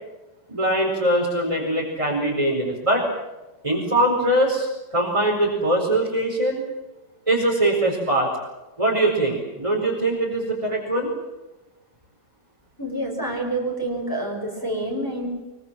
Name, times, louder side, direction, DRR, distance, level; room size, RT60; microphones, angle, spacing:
voice 1, 0.5-3.1 3.6-6.6 7.3-8.3 8.8-11.1, right 1 dB, 20° right, -3 dB, 4.8 m, -22 dB
voice 2, 12.8-15.3, right 1 dB, 10° left, -1 dB, 6.3 m, -27 dB
24.5 x 24.0 x 7.7 m, 1.1 s
omnidirectional pair, 1.8 m